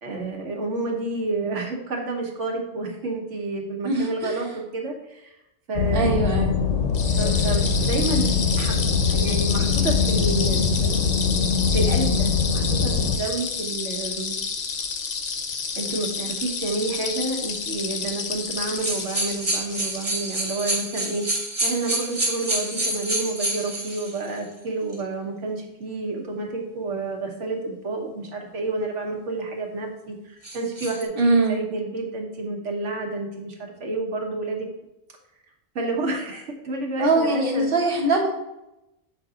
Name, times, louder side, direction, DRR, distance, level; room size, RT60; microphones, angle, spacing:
voice 1, 0.0-5.4 5.7-6.3 7.1-8.7 9.1-11.2 11.7-14.4 15.8-21.3 21.6-34.7 35.7-37.7, right 3 dB, 75° right, 1 dB, 1.5 m, -30 dB
voice 2, 3.8-4.3 5.9-6.5 31.2-31.6 37.0-38.3, right 2 dB, 50° right, 0 dB, 1.4 m, -21 dB
sound 1, 5.8-13.2, left 5 dB, 85° left, 1.0 m, -22 dB
sound 2, 6.9-20.4, left 5 dB, 50° left, 0.7 m, -30 dB
sound 3, 18.7-24.2 24.9-25.0 30.4-31.0, right 1 dB, 25° right, 1.1 m, -28 dB
7.2 x 4.4 x 3.7 m, 0.91 s
omnidirectional pair, 1.3 m